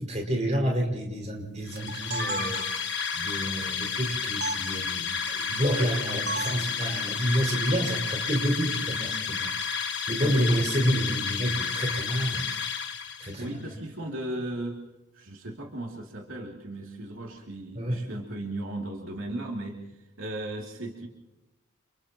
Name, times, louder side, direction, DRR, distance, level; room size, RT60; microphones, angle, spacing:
voice 1, 0.0-2.6 3.1-12.4 13.2-13.5 17.8-18.0, equal, 35° right, 0 dB, 5.5 m, -29 dB
sound 1, 1.7-13.5, left 6 dB, 55° left, 1.6 m, -31 dB
sound 2, 1.7-3.0 4.4-4.6 6.3-6.7, right 2 dB, 50° right, 1.3 m, -33 dB
voice 2, 13.4-14.8 15.1-21.1, right 1 dB, 85° right, -1 dB, 2.8 m, -36 dB
30.0 x 29.5 x 3.0 m, 0.96 s
head